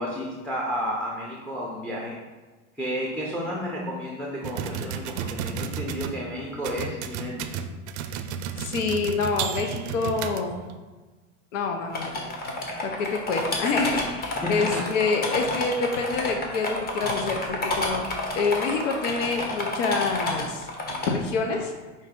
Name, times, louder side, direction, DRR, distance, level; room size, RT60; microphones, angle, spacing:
voice 1, 0.0-2.2 2.8-7.6 14.3-14.9, equal, 5° left, -3 dB, 0.5 m, -32 dB
sound 1, 4.4-6.2 6.6-10.7, right 7 dB, 65° right, 0.5 m, -32 dB
voice 2, 8.6-10.6 11.5-12.1 12.8-18.0 18.4-20.7 21.1-21.7, left 4 dB, 80° left, 3 dB, 0.7 m, -27 dB
sound 2, 11.9-21.1 21.5-21.6, left 2 dB, 25° left, 0.8 m, -29 dB
5.3 x 2.7 x 3.7 m, 1.3 s
supercardioid pair, 115°, 36 cm